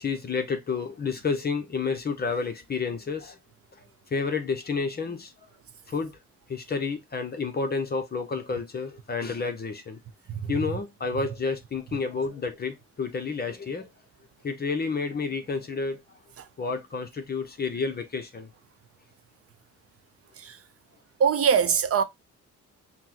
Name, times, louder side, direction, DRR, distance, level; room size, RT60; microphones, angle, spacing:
voice 1, 0.0-3.4 4.1-5.3 5.9-6.1 6.5-10.0 10.5-13.9 14.4-16.0 16.6-18.5, left 4 dB, 30° left, 0.8 m, -30 dB
voice 2, 21.2-22.0, right 7 dB, 50° right, 0.7 m, -21 dB
5.7 x 2.2 x 3.0 m
cardioid pair, 90°, 30 cm